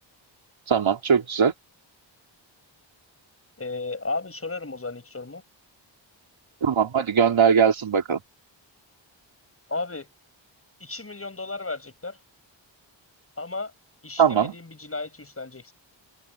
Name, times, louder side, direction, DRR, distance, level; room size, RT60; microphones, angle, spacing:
voice 1, 0.7-1.5 6.6-8.2 14.2-14.5, right 7 dB, 80° right, 3.1 m, -20 dB
voice 2, 3.6-5.4 9.7-10.1 10.8-12.2 13.4-13.7 14.0-15.7, left 3 dB, 30° left, 7.1 m, -34 dB
wide cardioid pair, 135°, 46 cm